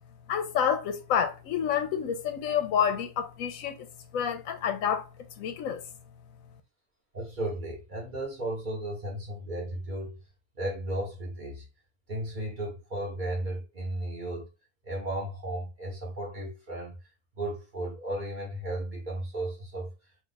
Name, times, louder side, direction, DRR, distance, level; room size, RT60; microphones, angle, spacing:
voice 1, 0.3-3.9 4.1-5.0 5.4-5.8, left 8 dB, 80° left, 1.0 m, -28 dB
voice 2, 7.1-10.2 10.5-11.6 12.1-14.5 14.8-17.0 17.3-19.9, right 1 dB, 40° right, 1.0 m, -34 dB
2.7 x 2.3 x 3.8 m
omnidirectional pair, 1.4 m